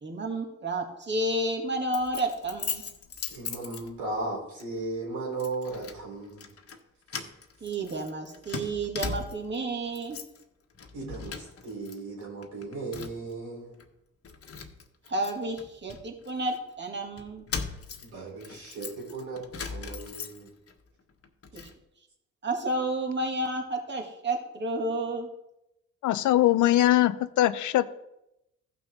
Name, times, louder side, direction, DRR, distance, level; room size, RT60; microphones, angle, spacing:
voice 1, 0.0-2.8 7.6-10.2 15.1-17.4 21.5-21.7 22.4-25.3, right 2 dB, 35° right, 2.4 m, -31 dB
Keys jangling, 1.9-4.2 4.6-4.8 5.4-6.0 6.3-6.8 7.1-9.6 9.9-10.4 10.7-11.9 12.2-13.3 13.8-13.9 14.2-16.6 17.2-20.7 21.1-21.8, left 5 dB, 45° left, 1.5 m, -39 dB
voice 2, 3.3-6.5 10.9-13.8 18.0-20.5, right 3 dB, 85° right, 4.5 m, -36 dB
voice 3, 26.0-27.9, left 14 dB, 65° left, 0.7 m, -22 dB
15.0 x 6.0 x 3.9 m
hypercardioid pair, 55°, 33 cm